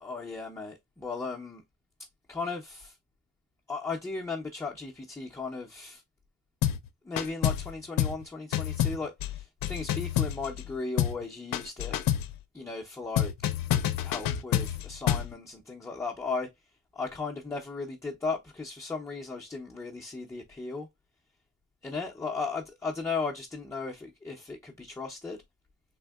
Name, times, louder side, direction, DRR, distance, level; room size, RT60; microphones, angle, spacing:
voice 1, 0.0-1.6 2.3-2.9 3.7-6.0 7.0-12.0 12.5-13.3 14.0-16.5 16.9-20.9 21.8-25.4, left 4 dB, 10° left, 0.5 m, -36 dB
sound 1, 6.6-6.9 7.2-7.7 8.0-8.2 8.5-10.7 11.0-11.2 11.5-12.3 13.2-15.3, left 11 dB, 80° left, 0.5 m, -28 dB
3.5 x 2.7 x 2.2 m
wide cardioid pair, 140°, 33 cm